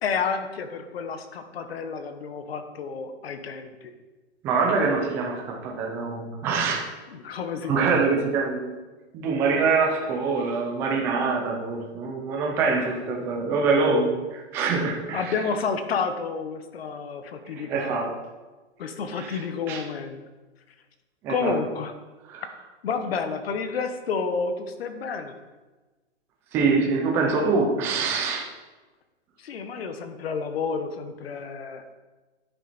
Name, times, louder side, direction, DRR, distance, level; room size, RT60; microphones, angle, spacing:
voice 1, 0.0-3.9 7.1-8.1 13.1-13.2 15.1-18.1 18.8-20.2 21.3-21.9 22.8-25.3 29.4-31.8, left 5 dB, 60° left, 8 dB, 1.3 m, -30 dB
voice 2, 4.4-6.9 7.6-8.7 9.1-15.3 17.5-18.1 19.2-19.4 19.7-19.8 21.2-21.6 22.3-22.4 26.5-28.4, right 4 dB, 5° right, 0 dB, 0.5 m, -24 dB
10.5 x 7.3 x 4.2 m, 1.2 s
hypercardioid pair, 165°, 35 cm